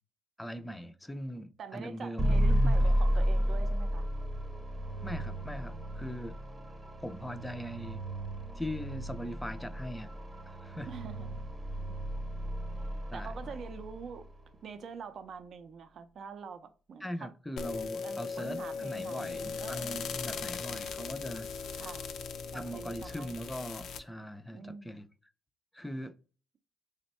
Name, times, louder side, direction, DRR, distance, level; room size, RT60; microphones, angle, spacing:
voice 1, 0.4-2.4 2.8-3.0 5.0-6.4 7.0-8.0 8.5-10.1 10.5-10.9 13.1-13.5 17.0-21.5 22.5-25.1 25.7-26.2, equal, 5° left, 0.4 m, -40 dB
voice 2, 1.6-4.1 10.9-11.4 11.7-12.0 12.7-14.2 14.6-17.3 18.0-20.1 21.8-22.1 22.5-23.4 24.5-25.0, right 6 dB, 60° right, 0.4 m, -45 dB
sound 1, 2.2-14.3, equal, 25° right, 0.8 m, -32 dB
sound 2, 17.6-24.0, left 5 dB, 75° left, 0.4 m, -38 dB
3.3 x 2.1 x 4.1 m
cardioid pair, 90°, 0 cm